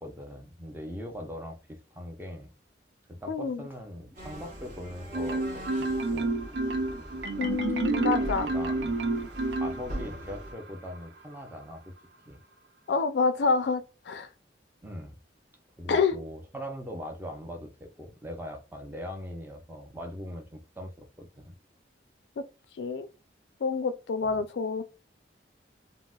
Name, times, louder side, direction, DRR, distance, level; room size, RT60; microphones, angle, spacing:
voice 1, 0.0-2.5 3.1-6.4 8.4-9.2 9.5-11.9 12.3-12.4 14.8-15.2 15.8-21.6 24.2-24.4, equal, 10° right, 0.5 m, -41 dB
voice 2, 3.3-3.6 7.4-8.5 12.9-14.3 15.9-16.2 22.4-22.5 22.8-23.1 23.6-24.8, left 4 dB, 75° left, 0.4 m, -27 dB
sound 1, 4.1-10.5, equal, 50° right, 1.0 m, -41 dB
Marimba xylophone, 5.1-10.3, right 3 dB, 75° right, 0.4 m, -29 dB
3.9 x 2.0 x 2.2 m
head